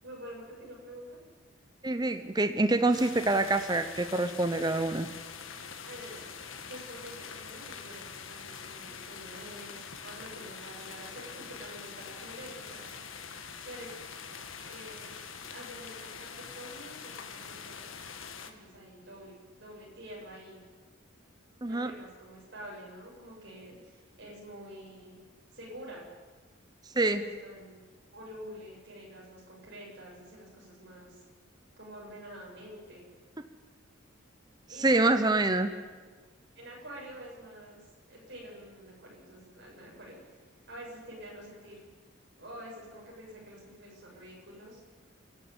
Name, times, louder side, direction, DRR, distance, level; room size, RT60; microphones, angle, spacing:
voice 1, 0.0-1.2 5.8-6.3 6.6-13.2 13.6-13.9 14.5-15.2 15.5-18.0 18.4-20.6 21.7-25.2 25.5-26.1 26.9-27.8 28.1-31.2 31.8-33.1 34.7-35.8 36.6-37.8 38.1-41.8 42.4-44.8, equal, 55° right, -3 dB, 7.0 m, -47 dB
voice 2, 1.8-5.1 21.6-21.9 27.0-27.2 34.8-35.7, right 2 dB, 20° right, 9 dB, 0.8 m, -26 dB
sound 1, 2.9-18.5, left 6 dB, 80° left, 1.8 m, -44 dB
29.0 x 11.5 x 9.1 m, 1.4 s
head